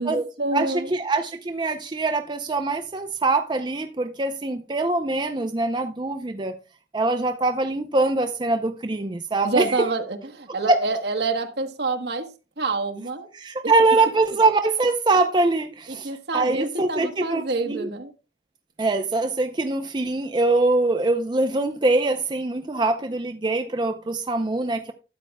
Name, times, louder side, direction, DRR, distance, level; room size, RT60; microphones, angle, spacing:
voice 1, 0.0-0.9 9.4-12.3 12.6-13.3 13.6-13.7 15.9-18.1, right 3 dB, 65° right, 1.2 m, -27 dB
voice 2, 0.5-6.5 6.9-9.9 10.7-10.8 13.3-17.9 18.8-24.9, right 2 dB, 25° right, 0.5 m, -23 dB
12.5 x 8.4 x 2.2 m
head